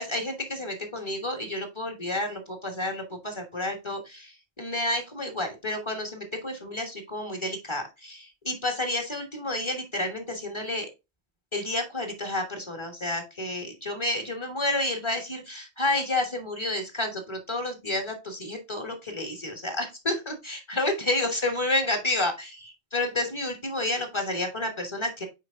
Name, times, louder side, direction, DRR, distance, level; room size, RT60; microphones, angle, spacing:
voice 1, 0.0-10.9 11.5-22.5 22.9-25.3, left 1 dB, 30° left, 3 dB, 1.5 m, -30 dB
6.3 x 4.6 x 3.7 m, 0.25 s
omnidirectional pair, 1.0 m